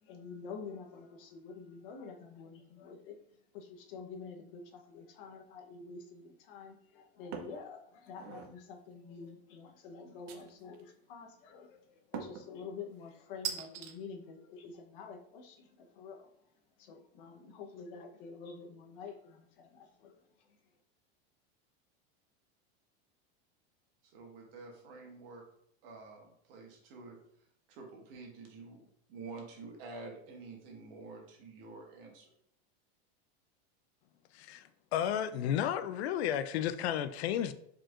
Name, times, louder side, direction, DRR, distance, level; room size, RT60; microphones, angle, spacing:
voice 1, 0.0-3.1 3.5-16.3 16.8-20.1, left 5 dB, 60° left, 0.9 m, -48 dB
sound 1, 7.3-7.6 8.1-8.5 10.3-10.8 12.1-12.5 13.4-13.9, right 8 dB, 45° right, 0.7 m, -40 dB
voice 2, 24.0-25.4 25.8-27.2 27.7-28.8 29.1-32.3, right 3 dB, 65° right, 1.6 m, -48 dB
voice 3, 34.3-37.5, left 10 dB, 90° left, 0.5 m, -33 dB
4.8 x 4.4 x 2.5 m
supercardioid pair, 160°, 31 cm